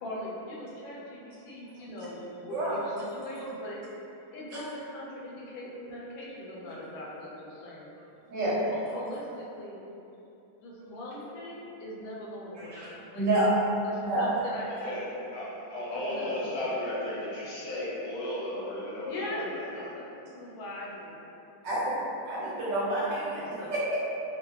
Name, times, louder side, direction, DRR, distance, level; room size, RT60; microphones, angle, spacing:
voice 1, 0.0-3.8 4.3-7.9 8.8-9.8 10.6-12.8 13.1-13.5 13.8-15.3 15.9-16.6 19.1-21.2 23.3-23.9, left 1 dB, 80° left, -5 dB, 1.3 m, -40 dB
voice 2, 13.1-13.5 14.0-14.3 21.6-21.9 22.3-23.4 23.7-23.9, right 1 dB, 65° right, -8 dB, 1.4 m, -28 dB
voice 3, 15.3-19.9, left 1 dB, 60° left, -8 dB, 1.0 m, -34 dB
3.0 x 2.7 x 2.9 m, 2.9 s
omnidirectional pair, 2.2 m